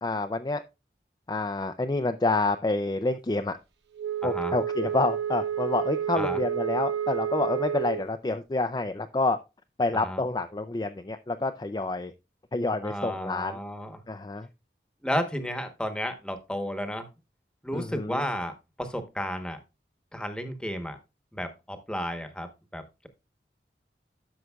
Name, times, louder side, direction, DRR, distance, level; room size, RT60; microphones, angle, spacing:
voice 1, 0.0-0.6 1.3-3.6 4.2-9.4 9.8-12.1 12.5-13.6 14.1-14.5 17.7-18.2, left 2 dB, 25° left, 0.4 m, -28 dB
Wind instrument woodwind instrument, 4.0-8.1, right 9 dB, 85° right, 1.0 m, -30 dB
voice 2, 4.2-4.5 6.2-6.4 9.9-10.2 12.8-14.0 15.0-17.1 17.6-18.5 18.8-19.6 20.1-21.0 21.3-23.1, equal, 5° left, 1.0 m, -33 dB
12.5 x 6.4 x 2.3 m
head